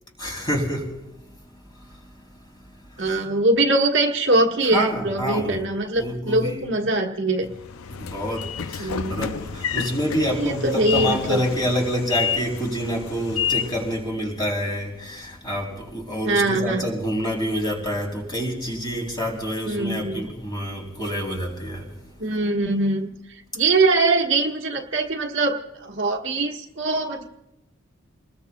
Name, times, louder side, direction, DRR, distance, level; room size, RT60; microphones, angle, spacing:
voice 1, 0.2-1.4 1.7-3.2 4.6-5.6 6.0-6.7 7.9-22.1, equal, 20° left, 0 dB, 3.2 m, -28 dB
voice 2, 3.0-7.5 8.8-9.3 10.2-11.4 16.2-16.9 19.6-20.3 22.2-23.1 23.5-27.2, right 2 dB, 60° right, 1 dB, 1.4 m, -22 dB
Train / Sliding door, 7.5-14.0, left 8 dB, 90° left, 0.5 m, -30 dB
29.0 x 20.5 x 2.3 m, 0.92 s
head